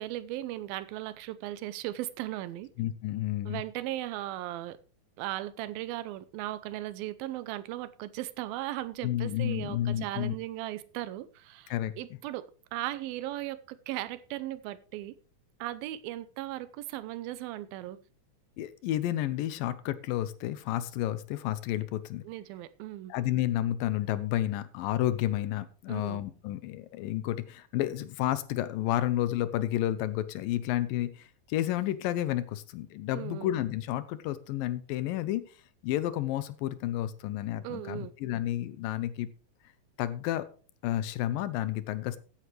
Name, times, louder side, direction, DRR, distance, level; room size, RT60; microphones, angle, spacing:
voice 1, 0.0-2.7 3.5-4.8 5.2-15.2 15.6-18.0 22.2-23.1 25.9-26.2 33.1-33.5 37.6-38.1, right 15 dB, 85° right, 2.5 m, -37 dB
voice 2, 2.8-3.6 9.0-10.4 11.7-12.0 18.6-22.2 23.1-35.4 35.8-39.3 40.0-40.5 40.8-42.2, left 13 dB, 80° left, 2.4 m, -31 dB
15.0 x 9.5 x 3.3 m
omnidirectional pair, 4.2 m